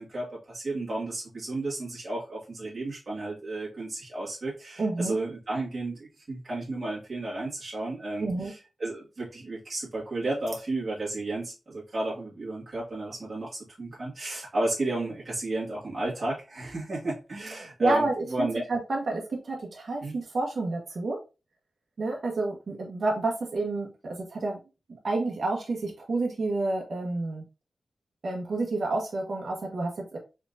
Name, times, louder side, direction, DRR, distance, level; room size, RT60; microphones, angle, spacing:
voice 1, 0.0-18.6 20.0-20.2, right 2 dB, 40° right, -7 dB, 2.1 m, -33 dB
voice 2, 4.8-5.1 8.2-8.5 17.8-21.2 22.0-24.6 25.0-27.4 28.2-30.2, right 2 dB, 65° right, 0 dB, 1.2 m, -29 dB
4.3 x 3.8 x 2.6 m, 0.29 s
wide cardioid pair, 85°, 0 cm